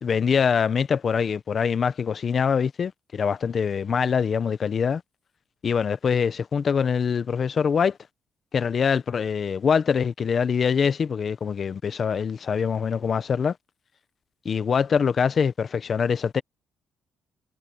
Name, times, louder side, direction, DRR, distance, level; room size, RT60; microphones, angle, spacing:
voice 1, 0.0-5.0 5.6-8.0 8.5-13.5 14.4-16.4, left 6 dB, 50° left, 1.2 m, -24 dB
cardioid pair, 90°, 0 cm